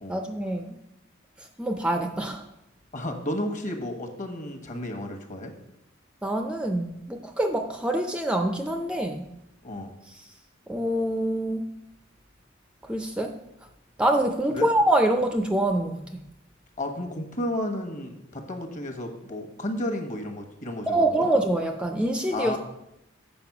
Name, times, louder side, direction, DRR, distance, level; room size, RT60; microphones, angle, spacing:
voice 1, 0.1-0.8 1.6-2.5 6.2-9.3 10.7-11.7 12.9-13.4 14.0-16.2 20.9-22.6, right 1 dB, 5° right, 5 dB, 0.4 m, -25 dB
voice 2, 2.9-5.5 9.6-9.9 14.5-14.7 16.8-21.3 22.3-22.6, left 1 dB, 40° left, 4 dB, 1.2 m, -32 dB
7.7 x 5.0 x 6.0 m, 0.84 s
head